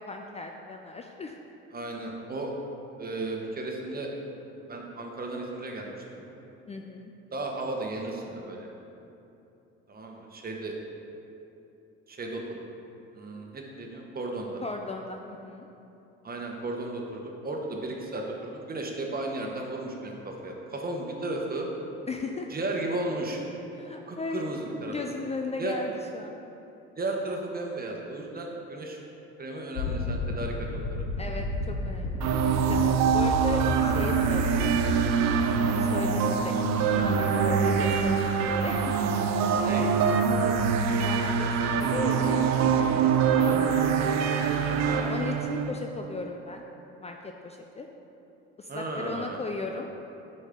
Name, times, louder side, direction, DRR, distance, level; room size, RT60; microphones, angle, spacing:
voice 1, 0.0-1.4 6.7-7.1 14.6-15.7 22.1-22.5 23.7-26.4 31.2-38.9 39.3-40.0 40.3-40.5 41.0-42.4 42.7-43.9 45.1-46.6 47.0-47.9 48.6-49.9, left 3 dB, 20° left, 2 dB, 0.5 m, -37 dB
voice 2, 1.7-2.5 3.0-4.1 4.7-6.2 7.3-8.7 9.9-10.7 11.1-11.2 12.1-12.6 13.1-14.6 16.2-21.7 22.5-23.4 24.1-24.9 25.6-25.8 27.0-29.0 29.4-31.0 39.6-39.8 44.8-45.1 48.7-49.4, right 2 dB, 30° right, 0 dB, 1.2 m, -34 dB
sound 1, 29.8-34.9, left 2 dB, 70° left, 0.8 m, -31 dB
sound 2, 32.2-45.7, right 6 dB, 60° right, 0.6 m, -24 dB
8.2 x 5.4 x 3.7 m, 2.9 s
hypercardioid pair, 65°, 30 cm